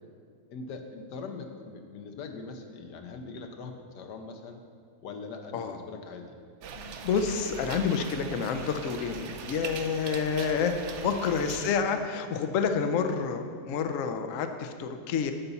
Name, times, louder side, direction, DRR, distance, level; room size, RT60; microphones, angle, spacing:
voice 1, 0.5-4.6 5.0-6.4 10.9-11.5, left 4 dB, 85° left, 5 dB, 1.5 m, -42 dB
sound 1, 6.6-11.7, right 6 dB, 65° right, 0.7 m, -40 dB
voice 2, 6.8-10.8 11.0-15.3, left 6 dB, 65° left, 7 dB, 0.9 m, -29 dB
11.5 x 4.1 x 6.9 m, 2.2 s
omnidirectional pair, 1.8 m